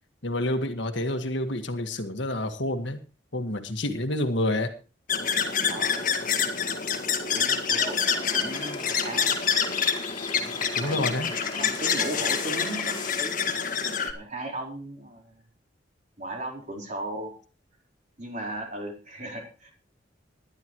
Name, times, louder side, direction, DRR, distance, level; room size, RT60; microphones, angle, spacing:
voice 1, 0.2-3.0 3.3-4.7 10.8-11.3, left 1 dB, 70° left, 7 dB, 1.8 m, -28 dB
sound 1, 5.1-14.1, left 6 dB, 45° left, 1.8 m, -27 dB
voice 2, 5.7-6.3 7.2-9.4 10.3-13.4 14.1-15.4 16.2-17.3 18.2-19.7, right 1 dB, 40° right, 1 dB, 4.4 m, -37 dB
sound 2, 7.5-13.1, left 4 dB, 25° left, 2.9 m, -41 dB
20.0 x 11.5 x 3.1 m, 0.34 s
head